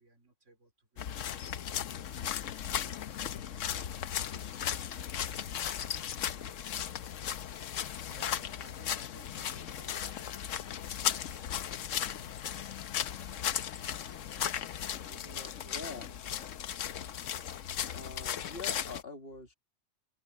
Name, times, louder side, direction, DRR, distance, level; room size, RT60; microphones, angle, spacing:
voice 1, 0.0-1.5 2.9-5.5 6.3-7.0 8.1-10.3 10.9-12.7 15.1-16.5, right 2 dB, 75° right, 4.6 m, -59 dB
sound 1, 1.0-19.0, left 9 dB, 85° left, 1.1 m, -36 dB
voice 2, 15.7-16.1 17.9-19.5, left 4 dB, 50° left, 2.4 m, -44 dB
open air
omnidirectional pair, 1.3 m